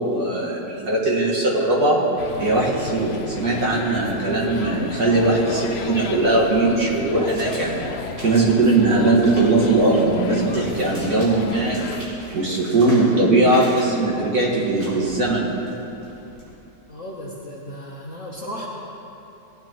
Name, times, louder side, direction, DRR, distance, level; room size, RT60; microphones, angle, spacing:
voice 1, 0.0-2.0 2.4-7.9 8.2-11.8 12.3-15.6, right 2 dB, 60° right, -5 dB, 2.2 m, -20 dB
sound 1, 2.2-12.1, left 4 dB, 70° left, 0.6 m, -33 dB
sound 2, 6.2-16.5, equal, 85° right, 3.4 m, -40 dB
voice 2, 16.9-18.7, equal, 50° left, -4 dB, 1.3 m, -35 dB
17.0 x 9.4 x 3.0 m, 2.9 s
omnidirectional pair, 1.9 m